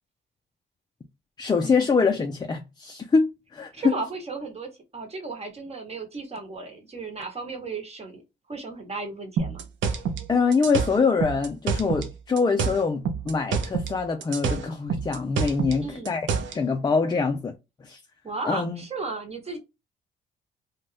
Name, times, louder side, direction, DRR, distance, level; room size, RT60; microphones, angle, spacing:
voice 1, 1.4-4.0 10.3-16.3 16.5-17.5 17.8-18.0 18.4-18.8, left 4 dB, 20° left, 0.4 m, -24 dB
voice 2, 3.7-8.2 8.5-9.6 15.8-16.2 18.2-19.6, right 4 dB, 30° right, 1.0 m, -35 dB
sound 1, 9.4-12.1 12.4-14.0 14.2-16.6, right 6 dB, 75° right, 0.6 m, -27 dB
2.6 x 2.2 x 3.2 m
cardioid pair, 90°, 20 cm